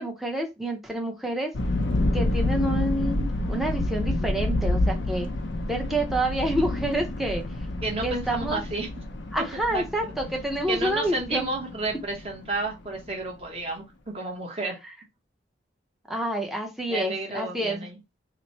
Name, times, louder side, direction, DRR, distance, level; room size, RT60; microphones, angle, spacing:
voice 1, 0.0-1.5 2.1-5.3 5.7-7.4 8.0-8.6 9.3-11.4 16.1-17.9, right 1 dB, ahead, 0.6 m, -28 dB
sound 1, 1.5-13.1, left 2 dB, 90° left, 0.6 m, -29 dB
voice 2, 5.8-6.2 7.8-8.9 9.4-9.5 9.7-10.1 10.7-14.8 16.9-18.0, right 2 dB, 35° right, 1.0 m, -31 dB
3.0 x 2.1 x 4.1 m
head